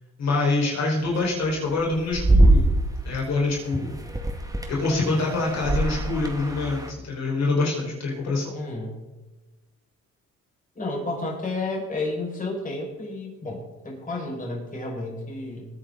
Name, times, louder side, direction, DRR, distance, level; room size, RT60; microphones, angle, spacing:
voice 1, 0.2-2.7 3.0-3.9 4.7-8.5, left 3 dB, 60° left, -3 dB, 5.2 m, -25 dB
sound 1, 1.1-3.1 3.9-6.9, right 1 dB, 10° right, 2.1 m, -22 dB
voice 2, 8.5-9.0 10.8-15.7, left 2 dB, 25° left, -2 dB, 5.7 m, -31 dB
21.0 x 10.0 x 4.0 m, 1.1 s
cardioid pair, 90°, 30 cm